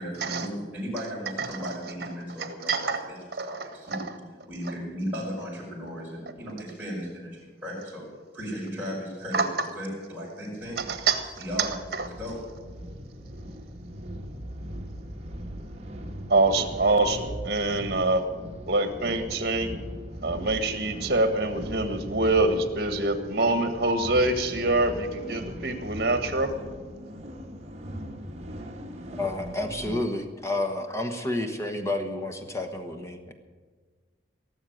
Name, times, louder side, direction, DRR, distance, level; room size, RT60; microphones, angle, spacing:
voice 1, 0.0-3.2 3.4-4.0 4.5-8.1 8.3-10.8 11.4-11.7 12.1-12.4, equal, 10° right, -9 dB, 5.3 m, -36 dB
voice 2, 2.4-3.0 3.4-3.6 3.9-4.1 9.3-9.5 10.8-11.2 11.6-12.1 16.3-18.2 18.7-19.7 20.2-26.5, right 2 dB, 55° right, 8 dB, 1.5 m, -25 dB
sound 1, 10.6-30.1, equal, 35° right, 1.4 m, -40 dB
voice 3, 29.1-33.3, left 2 dB, 15° left, 6 dB, 1.2 m, -30 dB
17.5 x 7.4 x 9.2 m, 1.5 s
head